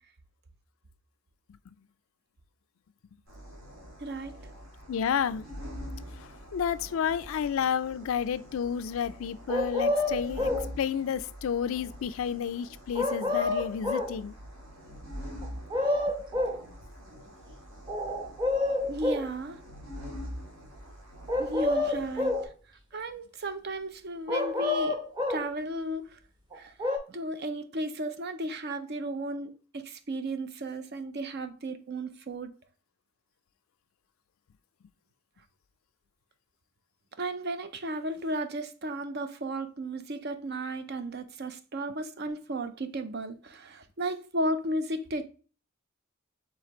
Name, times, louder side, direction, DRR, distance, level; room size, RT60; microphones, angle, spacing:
sound 1, 3.3-22.5, equal, 70° right, 2.1 m, -45 dB
voice 1, 4.0-4.3 18.9-19.6 21.4-22.4 22.9-25.0 25.3-26.2 26.5-26.7 27.1-32.5 37.2-45.3, right 1 dB, 50° right, 0.6 m, -34 dB
voice 2, 4.9-5.4 6.2-10.5 10.8-14.3, left 8 dB, 75° left, 0.4 m, -31 dB
sound 2, 9.5-10.7 12.9-14.1 15.4-16.6 17.9-19.3 21.3-22.5 24.3-25.5 26.5-27.0, left 2 dB, 20° right, 1.0 m, -28 dB
4.9 x 3.6 x 2.9 m
head